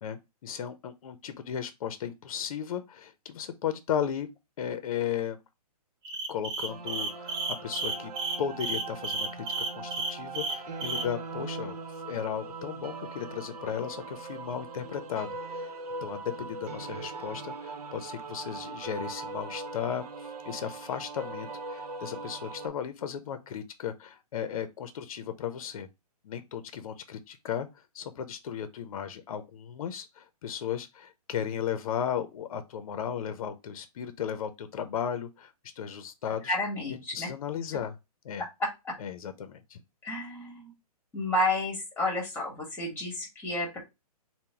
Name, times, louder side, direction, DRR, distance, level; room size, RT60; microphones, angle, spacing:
voice 1, 0.0-4.3 4.6-5.4 6.3-8.1 8.4-11.8 12.0-15.7 16.0-25.9 26.2-36.6 36.9-38.0 38.2-38.5 39.0-39.8, left 8 dB, 60° left, 0.6 m, -35 dB
sound 1, 6.0-11.1, right 4 dB, 35° right, 0.9 m, -32 dB
sound 2, 6.7-22.7, right 3 dB, 70° right, 0.9 m, -40 dB
voice 2, 36.4-37.3 40.0-40.7 41.1-43.8, left 1 dB, 10° left, 1.4 m, -31 dB
3.8 x 2.2 x 4.3 m
hypercardioid pair, 155°, 20 cm